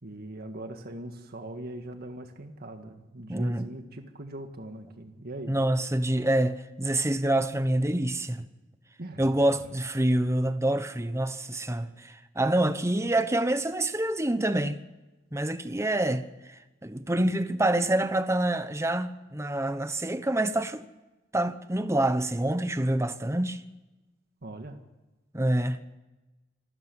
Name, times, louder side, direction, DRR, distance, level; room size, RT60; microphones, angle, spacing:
voice 1, 0.0-5.6 9.0-9.5 24.4-24.8, right 1 dB, 55° right, 1.9 m, -41 dB
voice 2, 3.3-3.7 5.5-8.5 9.2-14.8 15.3-20.8 21.3-23.6 25.3-25.8, right 1 dB, 15° right, 1.0 m, -27 dB
27.5 x 13.5 x 9.6 m
head